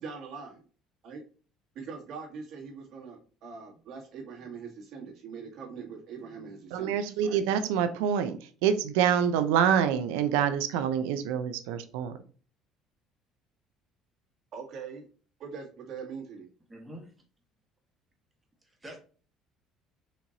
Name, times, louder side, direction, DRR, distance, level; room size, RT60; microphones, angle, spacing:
voice 1, 0.0-0.6 1.0-1.2 1.8-7.4 14.5-15.1 15.4-16.5, right 5 dB, 65° right, 0 dB, 1.7 m, -42 dB
voice 2, 6.7-12.2, right 8 dB, 90° right, 10 dB, 0.5 m, -26 dB
voice 3, 16.7-17.1 18.8-19.0, equal, 15° right, 2 dB, 1.4 m, -44 dB
4.4 x 2.8 x 2.6 m, 0.39 s
supercardioid pair, 95°, 0 cm